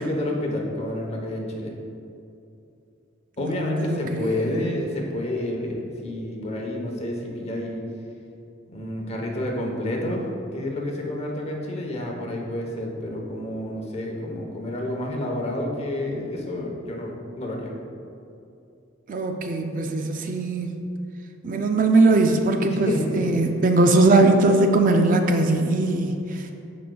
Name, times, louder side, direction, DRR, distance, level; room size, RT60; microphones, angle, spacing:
voice 1, 0.0-1.7 3.4-7.8 8.7-17.7 22.7-23.3, left 1 dB, 35° left, 0 dB, 1.0 m, -29 dB
voice 2, 3.4-4.8 19.1-20.8 21.4-22.9 23.2-26.5, right 2 dB, 45° right, 5 dB, 0.4 m, -20 dB
12.5 x 5.1 x 2.3 m, 2.6 s
head